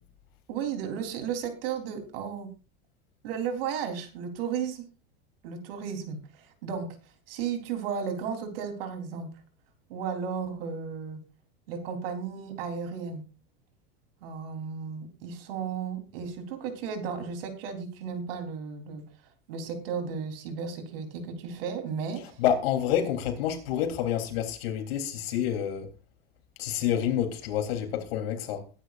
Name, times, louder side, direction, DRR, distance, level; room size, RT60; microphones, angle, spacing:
voice 1, 0.5-2.5 3.2-4.8 5.4-9.3 9.9-11.2 11.7-13.2 14.2-19.0 19.5-22.4, right 6 dB, 70° right, 3.6 m, -34 dB
voice 2, 22.4-25.9 26.6-28.7, left 10 dB, 75° left, 3.3 m, -28 dB
21.0 x 10.0 x 2.5 m
supercardioid pair, 160°, 30 cm